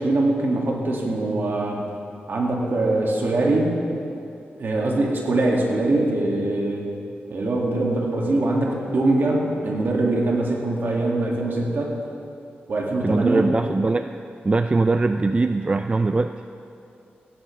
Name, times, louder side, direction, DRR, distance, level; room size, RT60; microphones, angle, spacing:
voice 1, 0.0-1.8 2.3-3.7 4.6-6.9 7.3-11.9 12.7-13.5, right 2 dB, 60° right, -1 dB, 2.1 m, -22 dB
voice 2, 13.0-14.1 14.4-16.3, right 3 dB, 25° right, 8 dB, 0.3 m, -21 dB
16.5 x 11.0 x 3.3 m, 2.6 s
cardioid pair, 70°, 4 cm